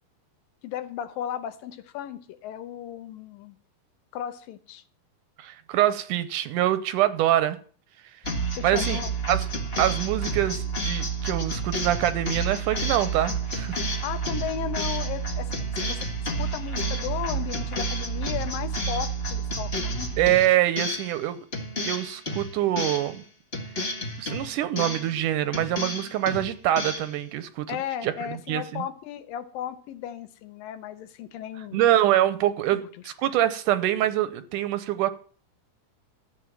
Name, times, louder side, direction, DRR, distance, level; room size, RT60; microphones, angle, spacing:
voice 1, 0.6-3.6 4.1-4.8 8.5-9.1 13.9-16.1 16.4-20.1 27.7-31.8 32.7-32.9, left 10 dB, 85° left, 2.7 m, -35 dB
voice 2, 5.4-7.6 8.6-9.0 9.3-9.5 9.8-13.8 20.2-21.4 21.8-23.2 24.2-27.8 28.0-28.1 28.5-28.8 31.7-32.8 33.0-35.1, right 13 dB, 75° right, 2.1 m, -24 dB
sound 1, 8.2-21.2 21.5-23.2 23.5-25.2 25.5-27.1, right 2 dB, 45° left, 0.7 m, -30 dB
14.0 x 7.7 x 7.3 m
omnidirectional pair, 4.0 m